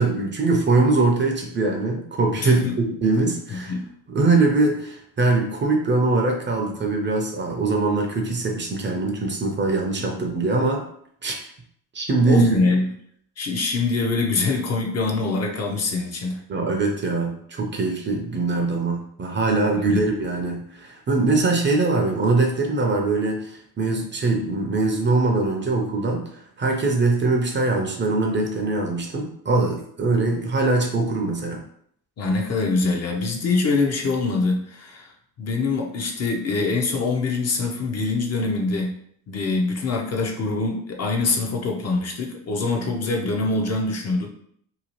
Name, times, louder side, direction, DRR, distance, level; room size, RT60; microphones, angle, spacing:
voice 1, 0.0-3.7 4.1-10.8 11.2-11.4 11.9-12.6 16.5-31.6, right 3 dB, 25° right, 2 dB, 0.5 m, -22 dB
voice 2, 2.4-2.8 3.5-3.8 10.0-10.2 12.2-12.9 13.4-16.4 19.7-20.0 32.2-35.1 35.4-38.9 39.3-44.3, left 3 dB, 40° left, 1 dB, 0.6 m, -24 dB
2.8 x 2.3 x 2.9 m, 0.66 s
supercardioid pair, 80°, 41 cm